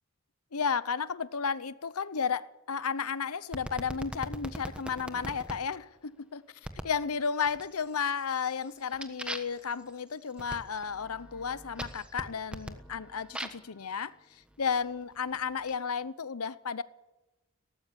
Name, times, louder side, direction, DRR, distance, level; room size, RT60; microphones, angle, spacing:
voice 1, 0.5-6.4 6.8-16.8, left 6 dB, 90° left, 0.8 m, -33 dB
sound 1, 3.5-5.6 6.6-7.0 7.5-7.9 8.3-13.7 14.5-15.7, right 1 dB, 5° right, 1.3 m, -42 dB
18.5 x 15.0 x 9.8 m
head